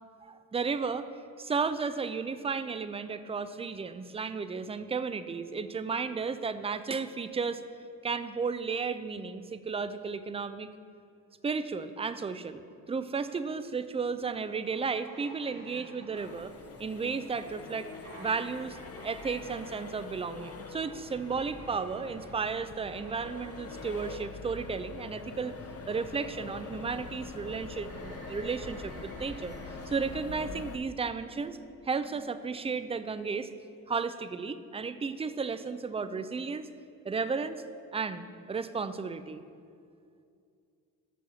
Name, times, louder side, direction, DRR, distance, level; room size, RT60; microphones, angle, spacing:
voice 1, 0.3-1.1 1.4-7.6 8.0-10.7 11.4-12.6 12.9-16.5 16.8-17.9 18.2-18.8 19.0-25.6 25.9-29.6 29.9-31.6 31.8-33.5 33.9-36.7 37.0-37.6 37.9-39.4, right 5 dB, 15° right, 12 dB, 0.4 m, -33 dB
sound 1, 14.5-30.0, right 2 dB, 75° right, 2.4 m, -54 dB
Accelerating revving vroom, 16.2-30.8, left 4 dB, 30° left, 0.8 m, -44 dB
sound 2, 21.6-33.9, right 1 dB, 65° left, 2.5 m, -55 dB
6.7 x 6.1 x 7.4 m, 2.4 s
hypercardioid pair, 45°, 45 cm